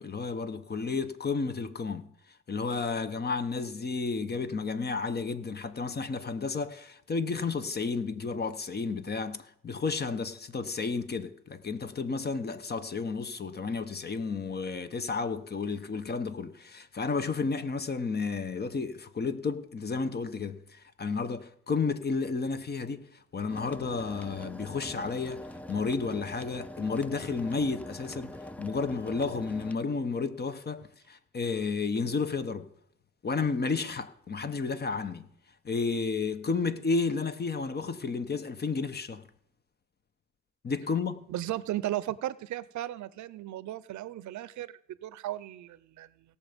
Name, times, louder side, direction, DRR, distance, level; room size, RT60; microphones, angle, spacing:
voice 1, 0.0-2.1 2.5-32.7 33.2-35.3 35.6-39.3 40.6-41.3, left 4 dB, 35° left, 1.0 m, -32 dB
sound 1, 23.5-29.7, left 1 dB, 5° left, 0.5 m, -44 dB
voice 2, 41.3-44.7 45.0-46.1, right 14 dB, 70° right, 0.7 m, -35 dB
17.5 x 6.8 x 5.2 m
cardioid pair, 90°, 30 cm